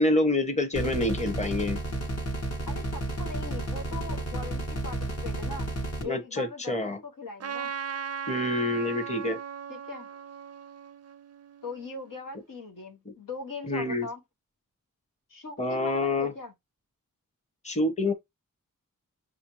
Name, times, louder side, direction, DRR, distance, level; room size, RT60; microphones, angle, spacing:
voice 1, 0.0-1.8 6.0-7.0 8.3-9.4 13.7-14.1 15.6-16.3 17.6-18.1, left 2 dB, 20° left, 0.8 m, -27 dB
sound 1, 0.7-6.0, right 1 dB, 50° left, 1.1 m, -32 dB
voice 2, 2.7-5.7 6.0-7.7 9.7-10.1 11.6-14.2 15.3-16.5, left 3 dB, 80° left, 1.1 m, -40 dB
Trumpet, 7.4-12.1, right 7 dB, 50° right, 0.4 m, -38 dB
6.3 x 2.5 x 3.0 m
wide cardioid pair, 95°, 32 cm